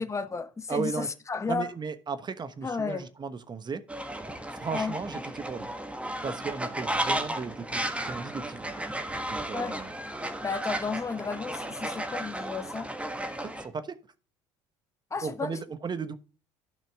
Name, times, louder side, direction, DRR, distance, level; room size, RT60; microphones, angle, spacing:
voice 1, 0.0-1.7 2.6-3.1 4.7-4.9 9.5-9.7 10.4-12.9 15.1-15.5, left 4 dB, 20° left, 1.1 m, -33 dB
voice 2, 0.7-1.1 1.5-3.8 4.5-5.7 6.2-8.8 9.3-9.9 13.4-14.0 15.2-16.2, right 5 dB, 30° right, 1.1 m, -35 dB
Fowl, 3.9-13.7, right 1 dB, 10° right, 1.5 m, -34 dB
12.0 x 5.8 x 3.6 m
hypercardioid pair, 65°, 15 cm